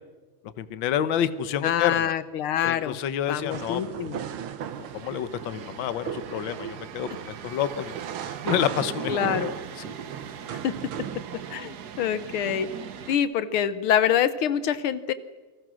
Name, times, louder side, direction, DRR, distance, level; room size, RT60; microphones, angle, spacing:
voice 1, 0.6-2.1 2.6-4.0 4.9-7.9 8.5-9.1, left 10 dB, 65° left, 12 dB, 1.7 m, -28 dB
voice 2, 1.6-3.0 3.3-4.2 9.1-9.5 10.6-10.7 11.5-12.7 13.1-15.1, left 9 dB, 85° left, 13 dB, 1.8 m, -25 dB
sound 1, 3.4-11.2, right 8 dB, 75° right, 2.0 m, -38 dB
sound 2, 4.6-13.2, right 8 dB, 55° right, 1.4 m, -39 dB
29.5 x 25.0 x 6.3 m, 1.3 s
omnidirectional pair, 2.3 m